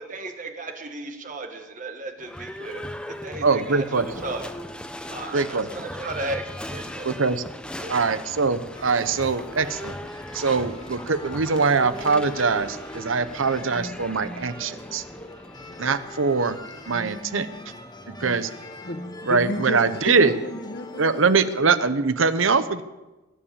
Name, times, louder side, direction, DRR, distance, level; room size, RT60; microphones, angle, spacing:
voice 1, 0.0-4.4 5.1-7.1 7.8-8.1, right 2 dB, 40° right, 5 dB, 1.3 m, -35 dB
Livestock farm animals working animals / Bell, 2.2-18.1, equal, 5° left, 0.7 m, -39 dB
voice 2, 3.4-4.1 5.3-5.7 7.0-7.4 7.9-10.0 10.3-15.0 15.8-16.6 16.9-17.5 18.1-18.5 19.3-20.3 21.0-22.8, right 4 dB, 85° right, 13 dB, 0.9 m, -22 dB
sound 1, 8.7-21.6, left 1 dB, 20° left, 1.4 m, -42 dB
voice 3, 18.8-21.2, left 1 dB, 50° left, 6 dB, 1.4 m, -32 dB
19.5 x 10.0 x 7.3 m, 1.1 s
head